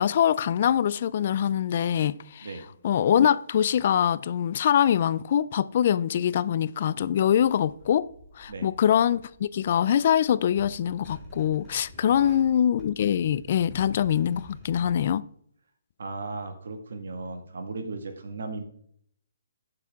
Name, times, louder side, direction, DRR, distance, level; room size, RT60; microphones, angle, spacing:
voice 1, 0.0-2.5 2.8-8.1 8.4-15.3, left 9 dB, 45° left, 0.3 m, -23 dB
sound 1, 7.2-15.0, equal, 10° right, 2.3 m, -50 dB
voice 2, 12.0-12.4 16.0-18.6, right 3 dB, 75° right, 1.6 m, -36 dB
8.2 x 6.8 x 3.5 m
hypercardioid pair, 155°, 0 cm